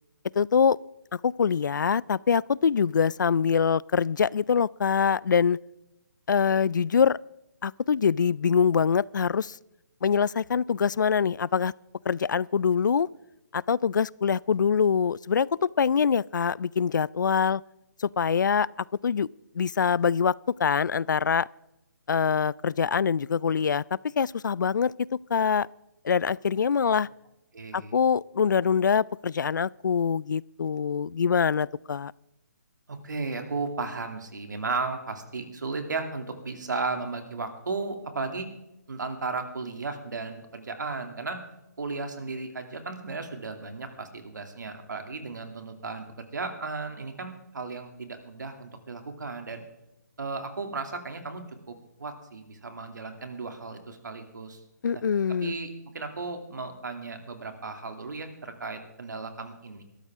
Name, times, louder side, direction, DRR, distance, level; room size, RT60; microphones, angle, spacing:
voice 1, 0.4-0.8 1.1-5.6 6.3-7.2 7.6-9.6 10.0-11.7 12.1-13.1 13.5-17.6 18.0-18.7 19.0-19.3 19.6-21.5 22.1-23.8 24.2-24.9 25.3-25.7 26.0-27.1 27.7-32.1 54.8-55.5, left 6 dB, 85° left, 0.4 m, -24 dB
voice 2, 27.5-28.0 32.9-38.5 38.9-41.4 41.8-49.6 50.2-54.6 54.9-55.0 55.4-55.7 55.9-59.8, right 3 dB, 80° right, 2.6 m, -35 dB
20.5 x 13.0 x 3.6 m
hypercardioid pair, 165°, 10 cm